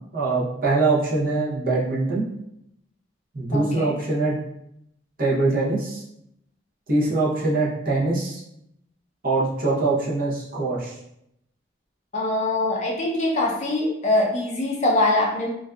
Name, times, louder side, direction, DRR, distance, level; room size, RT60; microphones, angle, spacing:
voice 1, 0.1-2.3 3.3-4.3 5.2-6.0 6.9-8.4 9.2-11.0, right 3 dB, 45° right, -6 dB, 0.7 m, -23 dB
voice 2, 3.5-3.9 12.1-15.5, left 2 dB, 35° left, -2 dB, 0.4 m, -23 dB
2.6 x 2.2 x 2.2 m, 0.79 s
head